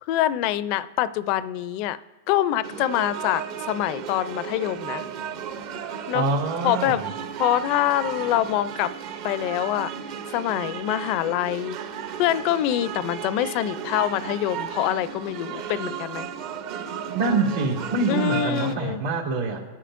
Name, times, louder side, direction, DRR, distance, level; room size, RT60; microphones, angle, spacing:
voice 1, 0.1-2.0 2.3-5.0 6.1-6.3 6.6-7.0 7.4-8.9 9.2-9.9 10.3-11.8 12.2-16.3 18.1-19.0, left 13 dB, 45° left, 16 dB, 0.4 m, -25 dB
sound 1, 2.6-18.8, right 8 dB, 50° right, 0.8 m, -34 dB
voice 2, 6.1-7.1 17.1-19.6, right 3 dB, 85° right, -3 dB, 2.4 m, -25 dB
22.5 x 10.0 x 2.6 m, 1.2 s
supercardioid pair, 140°, 0 cm